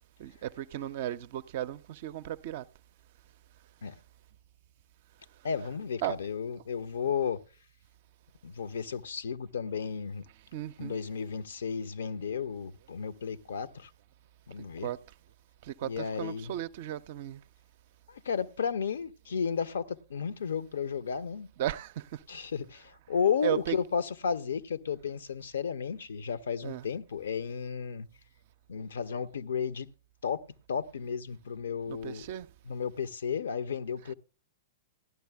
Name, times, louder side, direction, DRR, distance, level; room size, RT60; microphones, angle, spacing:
voice 1, 0.2-2.6 6.0-6.2 10.5-11.0 14.8-15.0 15.6-17.4 21.6-22.2 23.4-23.8 26.6-26.8 31.9-32.5, right 12 dB, 50° right, 0.4 m, -35 dB
voice 2, 5.4-7.4 8.4-10.3 10.8-13.9 14.5-14.9 15.8-16.5 18.1-21.5 22.3-28.1 28.7-29.9 30.2-30.4 30.7-32.3 32.7-34.1, left 6 dB, 65° left, 0.5 m, -33 dB
17.0 x 12.0 x 2.2 m
figure-of-eight pair, 105°, 0 cm